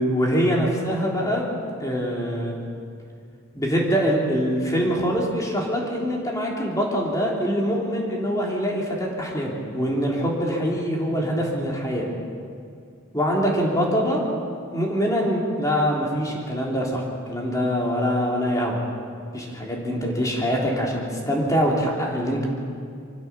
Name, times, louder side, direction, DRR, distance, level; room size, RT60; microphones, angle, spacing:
voice 1, 0.0-1.4 1.8-2.6 3.5-12.1 13.1-14.2 14.7-18.8 19.3-22.5, equal, 15° left, -2 dB, 3.3 m, -24 dB
25.0 x 15.0 x 7.1 m, 2.3 s
head